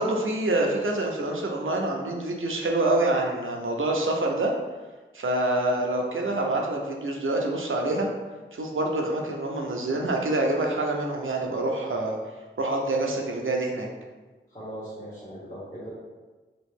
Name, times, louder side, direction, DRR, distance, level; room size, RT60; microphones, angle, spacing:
voice 1, 0.0-4.5 5.1-8.1 8.5-12.2 12.6-13.9, right 2 dB, 85° right, 0 dB, 0.6 m, -26 dB
voice 2, 14.5-15.9, equal, 30° left, -10 dB, 1.2 m, -39 dB
3.5 x 3.0 x 3.5 m, 1.3 s
wide cardioid pair, 55°, 20 cm